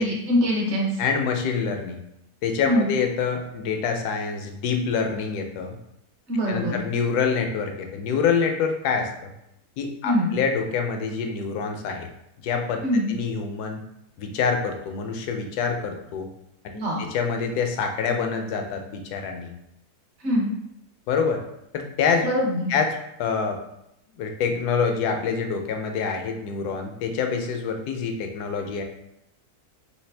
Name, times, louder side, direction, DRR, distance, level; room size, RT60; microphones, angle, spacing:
voice 1, 0.0-1.0 2.7-2.9 6.3-6.8 10.0-10.3 12.8-13.1 16.7-17.0 20.2-20.5 22.2-22.7, equal, 50° right, -2 dB, 1.1 m, -23 dB
voice 2, 1.0-2.0 2.4-5.8 6.5-9.3 9.8-12.1 12.4-12.8 13.1-13.8 14.2-16.3 16.6-16.7 17.0-19.5 21.1-21.4 21.7-22.3 22.7-23.6 24.1-28.8, left 5 dB, 80° left, 4 dB, 1.1 m, -26 dB
3.3 x 3.1 x 3.2 m, 0.81 s
omnidirectional pair, 1.7 m